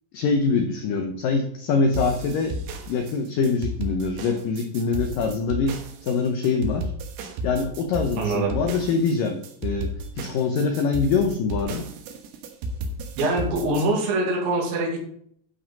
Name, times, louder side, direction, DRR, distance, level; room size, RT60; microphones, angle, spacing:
voice 1, 0.1-2.6 2.9-5.8 6.0-6.9 7.4-11.9, left 4 dB, 90° left, 5 dB, 1.9 m, -24 dB
sound 1, 1.9-13.8, right 1 dB, 70° right, 3.0 m, -33 dB
voice 2, 8.2-8.5 13.2-15.0, right 2 dB, 85° right, 0 dB, 4.6 m, -24 dB
12.0 x 5.2 x 5.3 m, 0.64 s
omnidirectional pair, 5.1 m